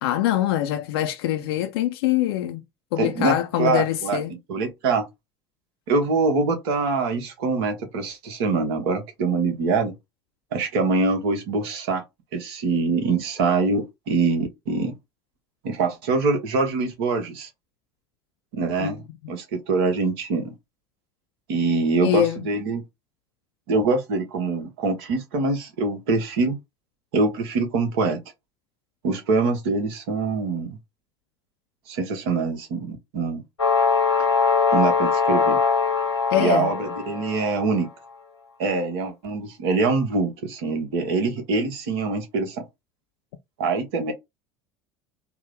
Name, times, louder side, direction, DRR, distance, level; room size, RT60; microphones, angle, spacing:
voice 1, 0.0-2.6 2.9-4.3 18.8-18.9 22.0-22.4 36.3-36.7, left 13 dB, 65° left, 0.4 m, -24 dB
voice 2, 3.0-4.2 4.5-5.1 5.9-9.9 10.5-12.0 12.3-15.0 15.6-17.5 18.5-19.0 19.3-20.5 21.5-22.8 23.7-26.6 27.1-28.2 29.0-30.8 31.9-33.4 34.7-35.6 36.4-37.9 38.6-42.6 43.6-44.1, right 3 dB, 60° right, 1.0 m, -24 dB
sound 1, 33.6-37.7, left 5 dB, 90° left, 0.7 m, -21 dB
3.5 x 2.0 x 3.1 m
figure-of-eight pair, 70°, 14 cm